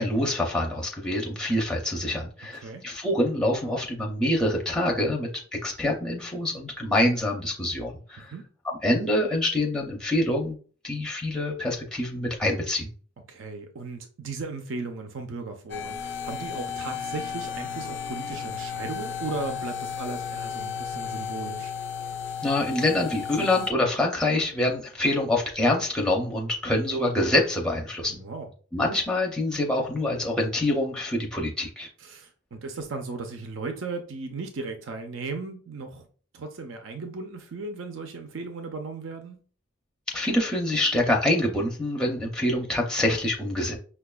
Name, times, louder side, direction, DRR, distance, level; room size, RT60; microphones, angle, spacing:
voice 1, 0.0-5.3 5.6-8.3 8.8-10.6 10.8-12.9 22.4-28.2 28.7-31.9 40.1-43.8, left 1 dB, 5° left, 0.5 m, -25 dB
voice 2, 2.5-2.8 8.2-8.5 13.3-21.7 28.1-28.5 32.0-36.1 36.3-39.4, right 3 dB, 80° right, 0.5 m, -36 dB
sound 1, 15.7-23.7, left 7 dB, 60° left, 0.4 m, -34 dB
5.6 x 2.2 x 2.2 m
head